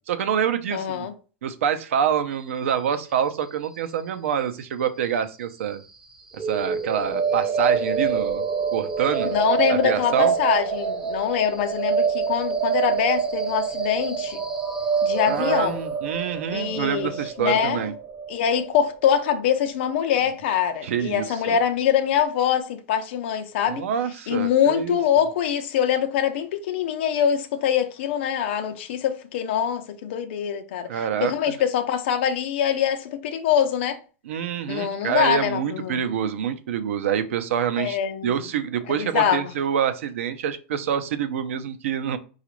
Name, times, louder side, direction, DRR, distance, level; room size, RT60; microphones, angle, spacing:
voice 1, 0.1-1.1 1.4-5.8 6.5-8.4 8.7-9.3 9.7-10.3 15.3-17.9 20.8-21.6 23.7-25.0 30.9-31.3 34.3-38.0 38.2-42.2, right 8 dB, 85° right, 0.6 m, -26 dB
voice 2, 0.7-1.1 9.3-14.4 15.0-15.8 16.5-17.8 18.3-23.9 24.3-34.0 34.7-36.0 37.8-38.4 38.9-39.5, left 9 dB, 60° left, 0.5 m, -24 dB
sound 1, 6.4-20.3, right 6 dB, 10° right, 0.4 m, -26 dB
4.9 x 2.4 x 3.0 m
supercardioid pair, 170°, 7 cm